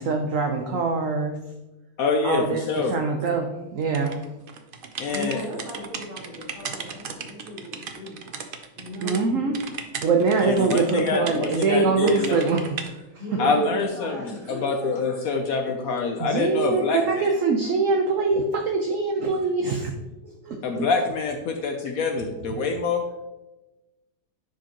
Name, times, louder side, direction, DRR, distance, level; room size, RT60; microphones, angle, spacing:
voice 1, 0.0-1.4 2.2-4.2 9.0-9.6 10.0-12.8 16.2-19.9 20.5-20.9, right 4 dB, 60° right, 3 dB, 0.9 m, -23 dB
voice 2, 2.0-3.0 5.0-5.4 10.4-12.4 13.4-17.3 20.6-23.1, left 4 dB, 65° left, 4 dB, 1.0 m, -26 dB
sound 1, 3.9-9.2 9.5-11.7 12.1-12.9, right 6 dB, 85° right, 0.4 m, -36 dB
voice 3, 5.1-8.4 8.8-9.3 10.5-11.0 13.2-15.1 15.6-17.4 20.2-20.8, equal, 40° right, -5 dB, 2.9 m, -37 dB
10.0 x 4.8 x 2.9 m, 1.0 s
omnidirectional pair, 1.8 m